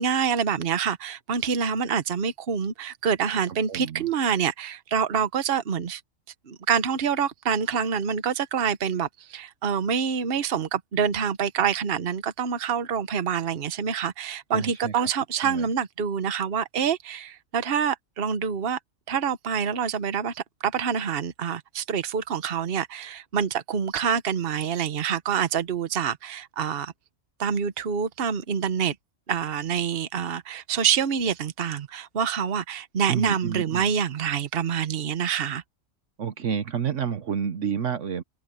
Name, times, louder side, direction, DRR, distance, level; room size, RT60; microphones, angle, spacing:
voice 1, 0.0-6.0 6.5-18.8 19.1-26.9 27.4-28.9 29.3-35.6, right 7 dB, 50° right, 1.2 m, -26 dB
voice 2, 3.7-4.1 14.5-15.1 15.4-15.7 33.1-33.9 36.2-38.2, right 7 dB, 65° right, 1.3 m, -30 dB
omnidirectional pair, 1.4 m